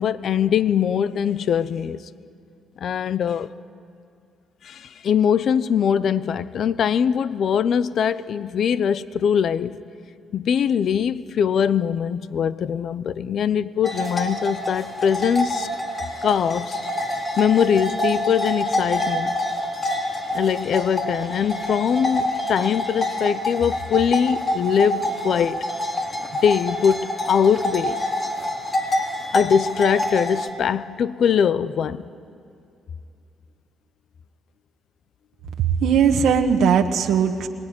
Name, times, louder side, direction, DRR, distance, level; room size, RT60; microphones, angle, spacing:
voice 1, 0.0-2.0 2.8-3.5 4.6-9.8 10.3-15.7 16.2-16.8 17.4-19.4 20.3-25.6 26.4-28.0 29.3-32.0, left 8 dB, 60° left, 0.6 m, -22 dB
sound 1, 13.8-30.5, left 1 dB, 30° left, 3.4 m, -27 dB
voice 2, 35.6-37.5, right 7 dB, 80° right, 1.2 m, -19 dB
25.0 x 20.0 x 9.7 m
cardioid pair, 90°, 0 cm